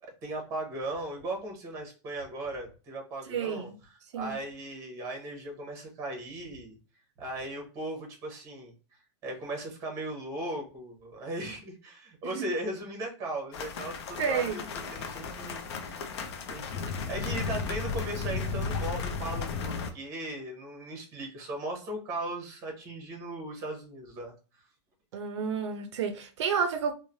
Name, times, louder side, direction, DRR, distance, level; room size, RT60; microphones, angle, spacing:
voice 1, 0.0-3.7 4.1-6.7 7.2-8.7 9.2-16.1 16.5-24.3, right 1 dB, 20° right, 0.8 m, -37 dB
voice 2, 3.3-3.7 4.1-4.3 12.2-12.5 14.2-14.7 25.1-26.9, right 6 dB, 75° right, 0.4 m, -30 dB
sound 1, 13.5-19.9, left 5 dB, 65° left, 0.5 m, -34 dB
3.1 x 2.1 x 2.5 m
supercardioid pair, 170°, 15 cm